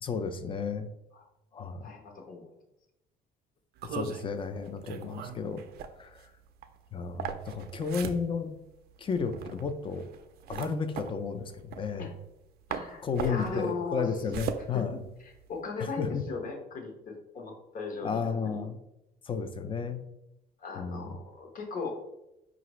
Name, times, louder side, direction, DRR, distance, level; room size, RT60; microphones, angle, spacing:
voice 1, 0.0-0.9 1.5-1.9 3.8-5.6 6.0-6.2 6.9-8.6 9.0-10.1 10.5-12.1 13.0-15.0 15.8-16.2 18.0-18.8 19.2-20.0 20.8-21.2, left 5 dB, 30° left, 9 dB, 0.4 m, -33 dB
voice 2, 1.8-2.5 12.0-12.1 12.7-14.2 14.7-14.8 15.2-18.6 20.6-21.9, left 4 dB, 55° left, 1 dB, 1.0 m, -38 dB
sound 1, 3.8-12.4 12.7-15.6, right 8 dB, 70° right, 0.4 m, -40 dB
4.7 x 2.5 x 3.0 m, 0.89 s
cardioid pair, 110°, 17 cm